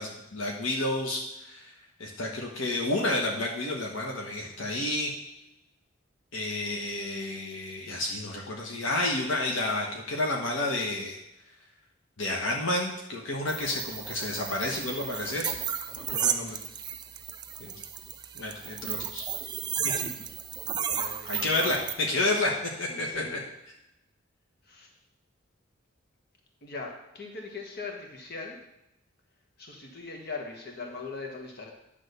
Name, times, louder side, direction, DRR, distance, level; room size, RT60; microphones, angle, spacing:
voice 1, 0.0-1.7 2.0-5.1 6.3-11.2 12.2-15.6 16.0-16.6 17.6-17.8 18.3-19.2 19.8-19.9 21.3-23.4, left 2 dB, 75° left, -1 dB, 1.2 m, -30 dB
sound 1, 13.5-21.9, right 8 dB, 20° right, 0.4 m, -34 dB
voice 2, 15.9-16.6 20.9-21.7 22.9-23.3 24.7-24.9 26.6-28.6 29.6-31.8, left 4 dB, 50° left, 1 dB, 1.4 m, -41 dB
9.9 x 3.6 x 6.7 m, 0.88 s
head